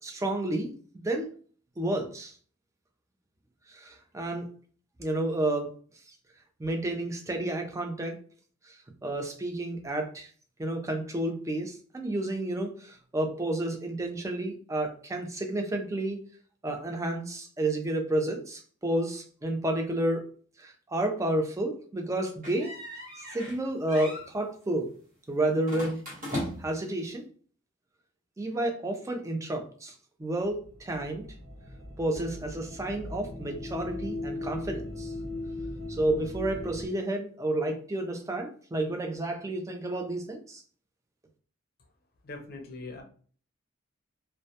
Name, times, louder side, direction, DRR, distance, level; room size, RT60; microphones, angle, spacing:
voice 1, 0.0-1.3 1.8-2.3 3.7-4.5 5.0-5.7 6.6-8.2 8.7-8.8 9.0-10.3 10.6-16.2 16.6-20.2 20.6-22.7 23.2-24.9 25.3-26.0 26.6-27.2 28.4-29.9 30.2-31.2 32.0-35.1 35.9-40.6, right 1 dB, 15° right, 4 dB, 0.3 m, -31 dB
sound 1, 22.4-23.6 23.9-24.3 25.6-26.8, left 1 dB, 45° right, 1.1 m, -37 dB
sound 2, 30.4-36.9, left 2 dB, 70° right, 0.8 m, -38 dB
voice 2, 42.2-43.0, left 3 dB, 50° left, 4 dB, 0.5 m, -41 dB
2.2 x 2.1 x 2.7 m, 0.43 s
head